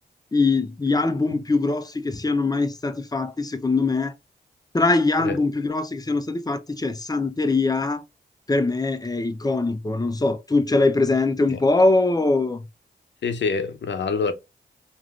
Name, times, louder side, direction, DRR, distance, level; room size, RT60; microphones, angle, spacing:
voice 1, 0.3-4.1 4.7-8.0 8.5-12.6, left 3 dB, 20° left, 0.5 m, -22 dB
voice 2, 13.2-14.3, left 5 dB, 75° left, 0.6 m, -26 dB
3.2 x 2.5 x 2.3 m
cardioid pair, 65°, 19 cm